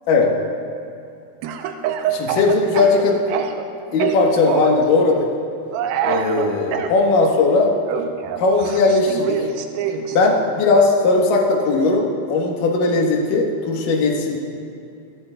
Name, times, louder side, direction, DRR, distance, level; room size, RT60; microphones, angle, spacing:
Speech / Cough, 1.4-3.7 4.0-4.8 5.7-6.9 7.9-10.2, right 8 dB, 85° right, 2.2 m, -25 dB
voice 1, 2.1-3.2 3.9-5.3 6.0-7.7 8.4-9.4 10.1-14.4, left 3 dB, 65° left, 0 dB, 2.4 m, -18 dB
22.0 x 11.0 x 2.3 m, 2.7 s
omnidirectional pair, 4.9 m